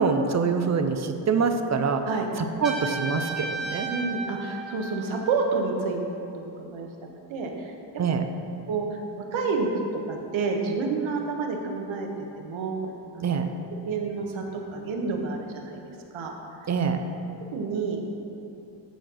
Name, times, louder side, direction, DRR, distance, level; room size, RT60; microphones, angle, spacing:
voice 1, 0.0-2.1 2.4-3.9 8.0-8.3 13.2-13.5 16.7-17.0, right 5 dB, 35° right, 7 dB, 0.6 m, -25 dB
Trumpet, 2.6-5.5, right 3 dB, ahead, 1.6 m, -34 dB
voice 2, 3.9-6.1 6.3-6.9 7.3-7.7 8.7-9.0 9.3-9.7 10.1-12.1 12.4-12.9 13.1-13.3 13.9-14.4 14.7-15.8 16.1-16.3 17.5-18.0, right 4 dB, 75° right, 1 dB, 1.5 m, -29 dB
13.0 x 4.4 x 6.2 m, 2.8 s
cardioid pair, 140°, 47 cm